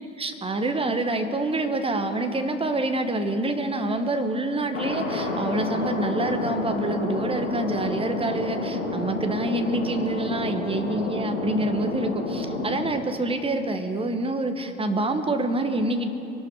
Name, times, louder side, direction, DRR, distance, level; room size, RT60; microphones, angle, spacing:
voice 1, 0.2-16.1, right 2 dB, 15° right, 7 dB, 1.4 m, -27 dB
Thunder, 4.7-12.9, left 2 dB, 80° left, 2.4 m, -29 dB
24.0 x 11.5 x 4.8 m, 2.9 s
figure-of-eight pair, 75°, 38 cm